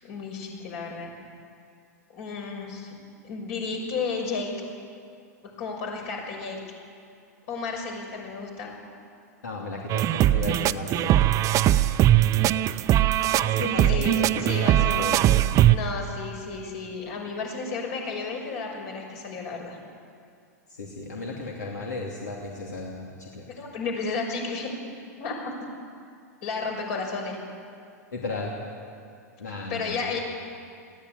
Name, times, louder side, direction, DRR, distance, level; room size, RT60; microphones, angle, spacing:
voice 1, 0.0-1.1 2.1-2.9 3.2-4.5 5.4-6.6 7.5-8.7 13.8-15.1 15.7-19.8 23.6-24.7 25.2-25.5 26.4-27.4 29.7-30.2, left 4 dB, 55° left, 1 dB, 6.2 m, -32 dB
voice 2, 9.4-11.2 13.4-15.2 20.7-23.4 28.1-28.5 29.4-30.2, left 3 dB, 85° left, -2 dB, 2.9 m, -35 dB
sound 1, 9.9-15.8, right 13 dB, 35° right, 0.7 m, -20 dB
20.0 x 15.5 x 9.7 m, 2.4 s
hypercardioid pair, 105°, 9 cm